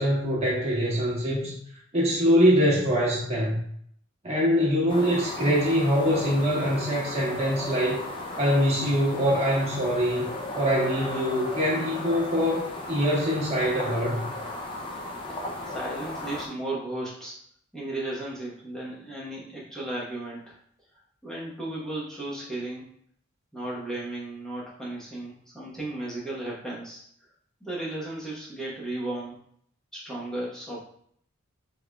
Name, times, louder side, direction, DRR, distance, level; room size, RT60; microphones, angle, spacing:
voice 1, 0.0-1.6 1.9-3.6 4.2-8.0 8.4-10.2 10.5-14.3, equal, 30° right, -5 dB, 1.2 m, -24 dB
sound 1, 4.9-16.5, left 2 dB, 25° left, 0.4 m, -35 dB
voice 2, 15.7-17.3 17.7-20.6 21.2-22.9 23.5-27.0 27.6-29.4 29.9-30.8, right 2 dB, 5° left, -7 dB, 0.9 m, -35 dB
3.6 x 3.5 x 2.2 m, 0.66 s
head